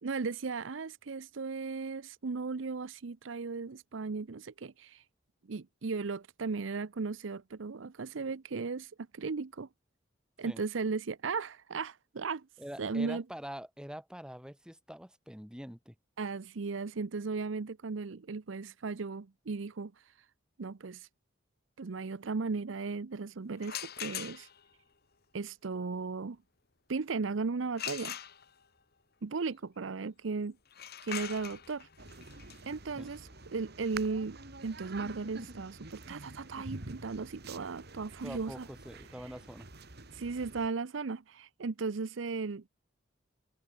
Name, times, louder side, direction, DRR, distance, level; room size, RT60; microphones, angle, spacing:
voice 1, 0.0-5.0 5.5-9.7 10.4-12.5 12.8-13.2 16.2-20.0 20.6-21.1 21.8-24.5 25.3-26.4 26.9-28.2 29.2-30.6 31.0-31.9 32.6-38.7 39.2-39.3 40.1-42.6, right 4 dB, 75° right, 0.6 m, -36 dB
voice 2, 12.6-15.9 33.0-33.1 38.2-39.7, equal, 5° right, 4.4 m, -45 dB
sound 1, 23.6-24.7 27.8-28.8 30.7-36.3, left 10 dB, 55° left, 2.4 m, -43 dB
sound 2, 32.0-40.7, right 3 dB, 55° right, 3.1 m, -47 dB
open air
head